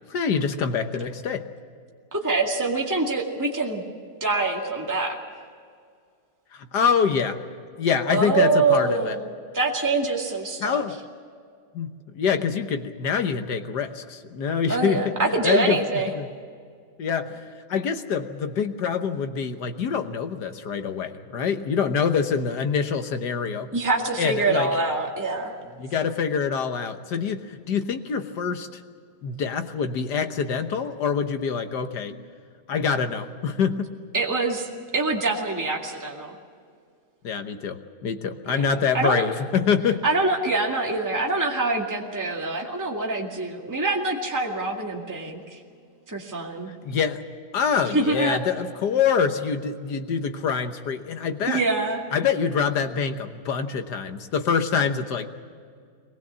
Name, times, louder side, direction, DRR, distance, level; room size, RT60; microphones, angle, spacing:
voice 1, 0.1-1.5 6.5-7.4 7.8-9.2 10.6-11.0 11.7-15.8 16.1-16.3 17.0-23.7 24.2-24.7 25.8-28.8 29.2-32.1 32.7-33.9 37.2-40.0 46.8-47.2 47.5-51.6 52.1-55.3, left 6 dB, 70° left, 8 dB, 1.7 m, -25 dB
voice 2, 2.1-3.8 4.2-5.2 8.1-10.8 14.7-16.1 23.7-25.5 34.1-34.7 34.9-36.4 38.5-39.2 40.0-45.6 46.1-46.7 47.9-48.4 51.5-52.0, right 3 dB, 10° right, -1 dB, 2.1 m, -25 dB
22.5 x 20.0 x 7.5 m, 2.1 s
omnidirectional pair, 1.9 m